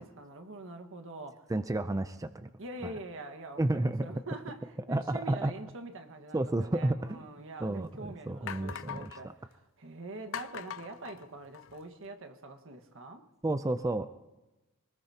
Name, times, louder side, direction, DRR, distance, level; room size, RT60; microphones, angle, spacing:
voice 1, 0.0-1.5 2.6-13.2, right 2 dB, 65° right, 1.6 m, -45 dB
voice 2, 1.5-2.5 2.8-2.9 3.6-4.1 4.9-5.5 6.3-7.2 7.6-9.3 13.4-14.1, right 2 dB, 15° right, 0.5 m, -31 dB
sound 1, 7.1-7.2 7.8-7.9 8.5-9.2 10.3-11.8, left 9 dB, 65° left, 0.6 m, -42 dB
24.5 x 20.0 x 2.9 m
head